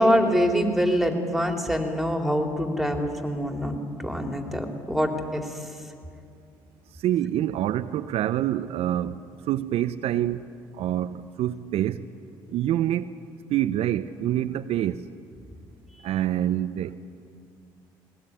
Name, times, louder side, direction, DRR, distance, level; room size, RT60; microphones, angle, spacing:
voice 1, 0.0-5.8, equal, ahead, 3 dB, 3.7 m, -25 dB
voice 2, 6.9-10.5 10.7-12.1 12.5-13.2 13.5-15.1 16.0-17.0, right 12 dB, 65° right, 11 dB, 0.7 m, -26 dB
19.5 x 19.5 x 10.0 m, 2.4 s
hypercardioid pair, 55°, 11 cm